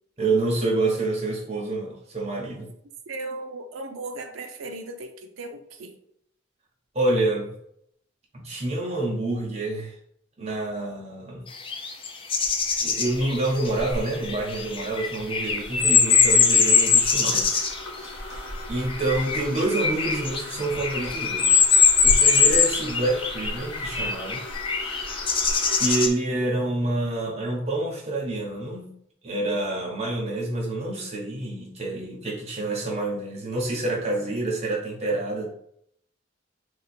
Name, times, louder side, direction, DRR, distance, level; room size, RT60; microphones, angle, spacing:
voice 1, 0.2-2.7 6.9-7.5 8.3-9.9 10.4-11.4 12.8-17.6 18.0-21.6 22.0-24.4 24.8-25.2 25.7-28.9 29.2-35.5, right 2 dB, 35° right, -2 dB, 0.9 m, -27 dB
voice 2, 3.1-5.1 5.4-5.9, right 2 dB, 85° right, 4 dB, 0.5 m, -36 dB
sound 1, 11.6-17.8 18.9-26.1, left 6 dB, 25° left, 0.4 m, -22 dB
sound 2, 12.3-26.1, left 1 dB, 80° left, 1.0 m, -37 dB
2.9 x 2.3 x 4.2 m, 0.70 s
head